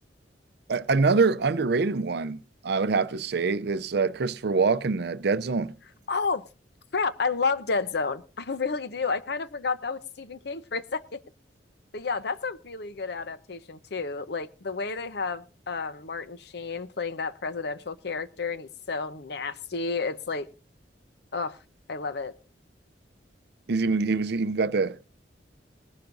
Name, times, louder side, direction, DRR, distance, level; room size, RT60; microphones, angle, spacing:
voice 1, 0.7-5.7 23.7-25.0, right 4 dB, 65° right, 0.5 m, -25 dB
voice 2, 6.1-6.4 6.9-11.2 11.9-20.5 21.3-21.6 21.9-22.4, left 4 dB, 65° left, 0.8 m, -31 dB
20.0 x 11.5 x 2.6 m
head